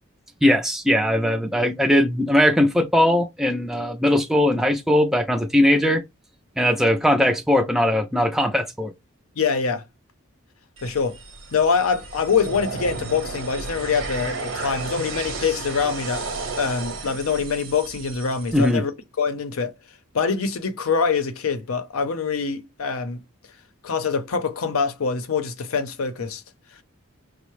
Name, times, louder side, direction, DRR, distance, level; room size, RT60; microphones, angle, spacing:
voice 1, 0.4-6.0 6.6-8.9 18.5-18.8, left 1 dB, ahead, 0.3 m, -19 dB
voice 2, 9.4-9.8 10.8-11.2 11.5-16.2 16.6-18.9 19.2-19.7 20.1-23.2 23.8-26.4, left 5 dB, 85° left, 0.6 m, -24 dB
sound 1, 10.8-18.7, right 3 dB, 65° right, 0.9 m, -33 dB
5.4 x 2.0 x 3.0 m
head